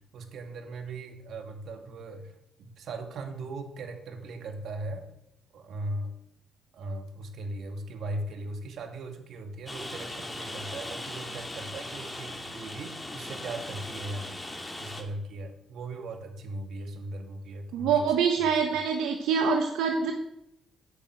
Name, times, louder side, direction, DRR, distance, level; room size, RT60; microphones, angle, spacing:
voice 1, 0.1-2.3 2.6-5.1 5.5-6.2 6.7-14.4 14.8-18.0 18.4-18.8, right 2 dB, 70° right, 5 dB, 2.2 m, -38 dB
Rain, 9.7-15.0, left 1 dB, 15° left, 2.5 m, -39 dB
voice 2, 17.7-20.1, right 6 dB, 90° right, 4 dB, 1.2 m, -25 dB
9.8 x 7.9 x 8.8 m, 0.81 s
cardioid pair, 90°, 0 cm